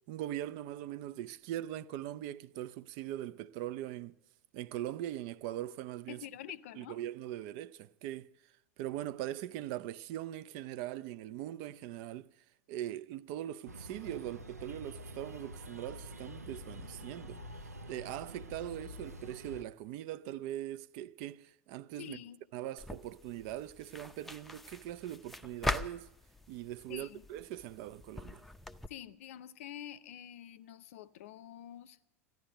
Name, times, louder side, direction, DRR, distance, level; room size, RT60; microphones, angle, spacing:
voice 1, 0.1-4.2 4.5-6.2 6.8-8.3 8.8-12.3 12.7-17.4 17.9-22.2 22.5-26.1 26.5-28.4, right 13 dB, 50° right, 0.4 m, -41 dB
voice 2, 6.1-7.0 22.0-22.4 26.9-27.2 28.9-32.0, left 11 dB, 60° left, 0.6 m, -47 dB
sound 1, 13.7-19.6, equal, 85° right, 0.7 m, -47 dB
sound 2, 22.8-28.9, left 2 dB, ahead, 0.5 m, -42 dB
14.0 x 10.5 x 7.9 m
figure-of-eight pair, 85°, 8 cm